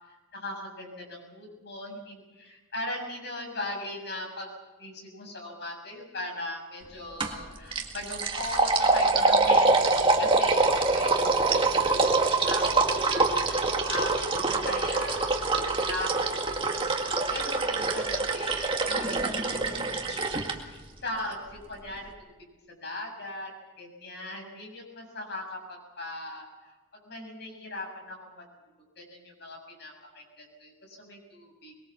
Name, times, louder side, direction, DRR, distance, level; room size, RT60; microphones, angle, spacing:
voice 1, 0.3-4.5 4.8-17.0 17.3-22.3 22.8-23.5 23.8-26.7 27.1-28.4 29.0-31.7, left 1 dB, 55° left, 1 dB, 7.3 m, -39 dB
sound 1, 7.2-7.4 7.7-20.5, right 3 dB, 25° right, 2.1 m, -25 dB
23.5 x 22.5 x 7.4 m, 1.2 s
head